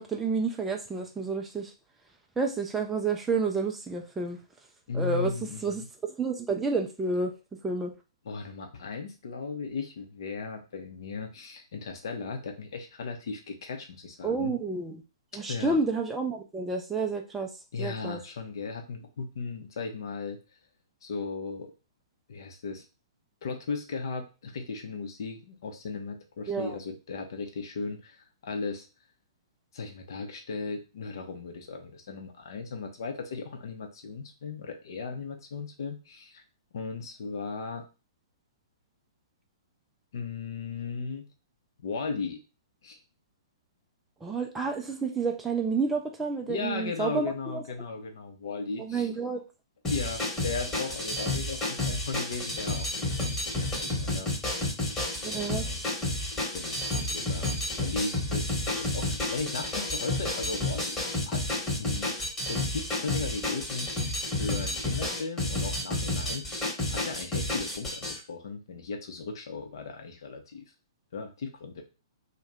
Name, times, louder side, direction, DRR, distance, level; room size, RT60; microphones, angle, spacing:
voice 1, 0.0-1.7 2.4-4.4 4.9-5.3 5.6-7.3 7.6-7.9 14.2-15.0 15.3-17.5 17.8-18.2 26.5-26.8 44.2-47.6 48.8-49.4 55.2-55.7, right 4 dB, 10° right, 1 dB, 0.4 m, -30 dB
voice 2, 4.9-5.9 8.2-14.5 15.5-15.8 17.7-20.4 21.0-21.7 22.3-22.8 23.4-28.9 29.7-36.4 36.7-37.9 40.1-41.3 41.8-42.4 42.8-43.0 46.5-49.1 49.9-54.3 55.2-55.8 56.5-61.0 61.3-61.5 61.8-62.1 62.5-63.9 64.4-66.5 66.9-70.6 71.1-71.8, left 4 dB, 60° left, 5 dB, 0.7 m, -36 dB
sound 1, 49.8-68.2, left 1 dB, 15° left, 1.2 m, -31 dB
2.7 x 2.2 x 3.4 m, 0.30 s
figure-of-eight pair, 120°, 3 cm